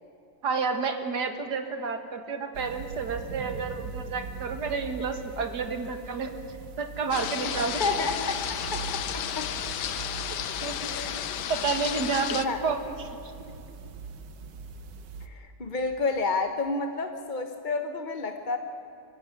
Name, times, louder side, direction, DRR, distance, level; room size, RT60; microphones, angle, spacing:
voice 1, 0.4-6.3 6.8-7.8 10.6-10.9 11.5-12.8, right 5 dB, 70° right, 7 dB, 2.2 m, -30 dB
sound 1, 2.5-15.3, right 5 dB, 85° right, 1.8 m, -42 dB
sound 2, 7.1-12.5, left 10 dB, 75° left, 1.5 m, -33 dB
voice 2, 7.8-9.5 10.8-11.2 12.0-12.6 15.2-18.6, left 3 dB, 35° left, 6 dB, 1.0 m, -31 dB
23.0 x 16.0 x 9.4 m, 3.0 s
omnidirectional pair, 1.8 m